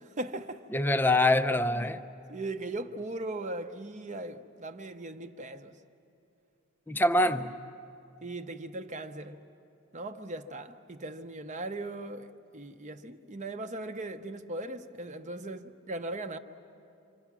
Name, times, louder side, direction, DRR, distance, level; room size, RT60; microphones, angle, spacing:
voice 1, 0.0-0.6 1.8-1.9 2.3-5.7 8.2-9.4 9.9-16.4, right 2 dB, 35° right, 0.8 m, -39 dB
voice 2, 0.7-2.0 6.9-7.6, left 1 dB, 10° left, 0.5 m, -25 dB
26.5 x 26.0 x 6.1 m
head